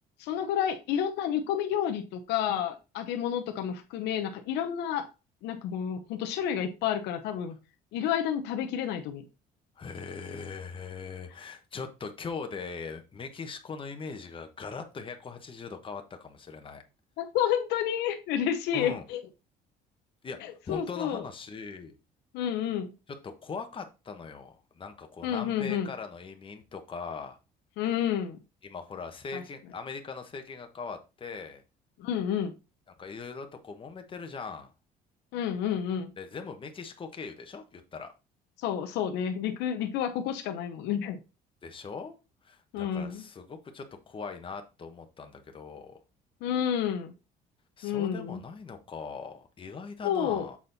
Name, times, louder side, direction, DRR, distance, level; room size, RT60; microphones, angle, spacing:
voice 1, 0.2-5.1 5.4-7.6 7.9-9.2 17.2-19.2 20.4-21.2 22.3-22.9 25.2-25.9 27.8-28.4 29.3-29.4 32.0-32.5 35.3-36.1 38.6-41.2 42.7-43.2 46.4-47.1 47.8-48.4 50.0-50.5, left 9 dB, 85° left, 5 dB, 0.8 m, -30 dB
voice 2, 9.8-16.8 18.7-19.0 20.2-20.4 20.7-22.0 23.2-27.4 28.6-31.6 33.0-34.7 36.2-38.1 41.6-42.1 42.4-46.0 47.8-50.6, left 5 dB, 30° left, 6 dB, 1.2 m, -40 dB
7.3 x 4.2 x 4.0 m, 0.29 s
cardioid pair, 110°, 17 cm